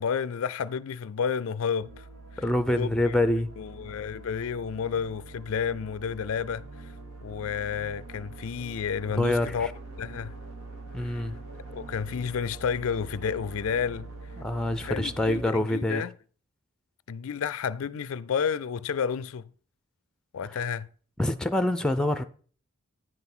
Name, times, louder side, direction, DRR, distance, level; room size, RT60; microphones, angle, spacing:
voice 1, 0.0-2.1 2.3-2.4 2.7-3.1 3.6-6.9 7.2-9.7 10.0-10.3 11.0-11.2 11.7-14.1 14.8-16.1 17.1-19.4 20.3-20.9, left 6 dB, 70° left, 0.4 m, -31 dB
sound 1, 1.8-15.4, right 2 dB, 85° right, 2.1 m, -44 dB
voice 2, 2.4-3.5 9.1-9.7 10.9-11.4 14.4-16.0 20.5-20.6 21.2-22.2, left 1 dB, 5° left, 0.5 m, -26 dB
9.5 x 5.7 x 6.0 m
head